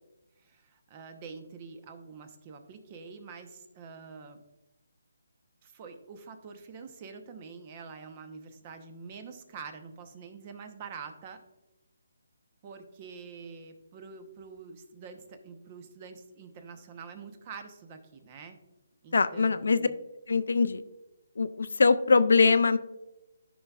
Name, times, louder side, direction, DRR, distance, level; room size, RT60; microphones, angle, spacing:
voice 1, 0.4-4.4 5.6-11.4 12.6-18.6 19.0-20.0, right 5 dB, 30° right, 7 dB, 0.9 m, -46 dB
voice 2, 19.1-19.9 20.3-20.8 21.4-22.8, left 4 dB, 75° left, 13 dB, 0.5 m, -22 dB
13.5 x 5.5 x 2.4 m, 1.0 s
hypercardioid pair, 160°, 0 cm